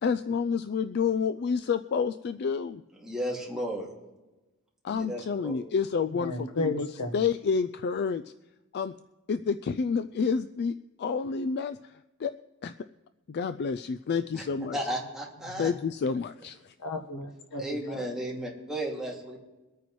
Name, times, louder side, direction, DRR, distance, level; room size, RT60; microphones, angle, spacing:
voice 1, 0.0-2.8 4.8-8.2 8.7-8.9 9.3-11.9 12.2-12.3 12.6-12.7 13.3-14.8 15.6-16.7, left 5 dB, 50° left, 12 dB, 0.3 m, -29 dB
voice 2, 3.0-3.8 4.9-5.5 14.3-14.4 14.7-15.7 17.6-19.4, right 1 dB, 5° right, -4 dB, 2.3 m, -34 dB
voice 3, 6.2-7.2 15.5-15.7 16.8-18.0, left 2 dB, 85° left, 3 dB, 1.3 m, -34 dB
23.5 x 9.2 x 3.1 m, 1.1 s
head